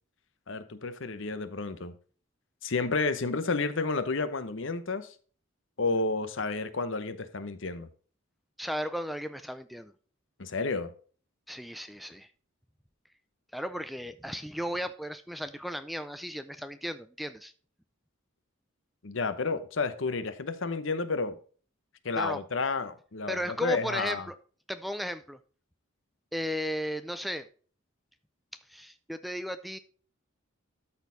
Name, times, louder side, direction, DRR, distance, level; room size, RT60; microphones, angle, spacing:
voice 1, 0.5-1.9 2.6-5.1 5.8-7.9 10.4-10.9 19.0-21.4 22.0-24.3, left 3 dB, 65° left, 11 dB, 0.9 m, -31 dB
voice 2, 8.6-9.9 11.5-12.3 13.5-17.5 22.1-22.4 23.3-24.4 24.7-25.4 26.3-27.5 28.7-29.8, equal, ahead, 11 dB, 0.3 m, -35 dB
12.5 x 4.3 x 3.9 m, 0.42 s
head